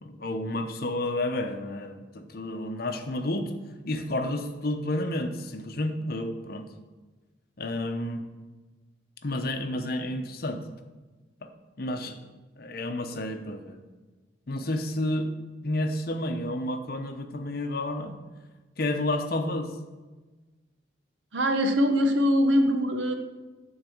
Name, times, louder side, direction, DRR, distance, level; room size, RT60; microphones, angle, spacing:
voice 1, 0.0-3.5 3.9-6.7 7.6-8.2 9.2-10.6 11.4-11.5 11.8-12.2 12.6-13.8 14.5-15.3 15.6-18.2 18.8-19.7, left 1 dB, 55° left, 6 dB, 0.8 m, -30 dB
voice 2, 21.3-23.1, equal, 80° right, 6 dB, 1.0 m, -22 dB
9.5 x 4.0 x 7.1 m, 1.2 s
head